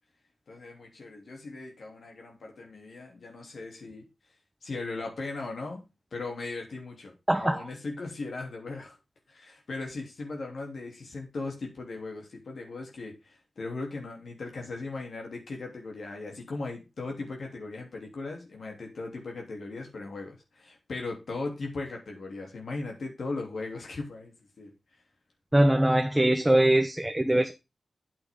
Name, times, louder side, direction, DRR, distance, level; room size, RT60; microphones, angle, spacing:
voice 1, 0.5-4.1 4.6-5.8 6.1-7.1 7.4-9.0 9.3-24.7, left 3 dB, 65° left, 3.1 m, -38 dB
voice 2, 7.3-7.6 25.5-27.5, right 1 dB, 10° right, 1.0 m, -22 dB
8.9 x 8.6 x 3.7 m
wide cardioid pair, 100°, 0 cm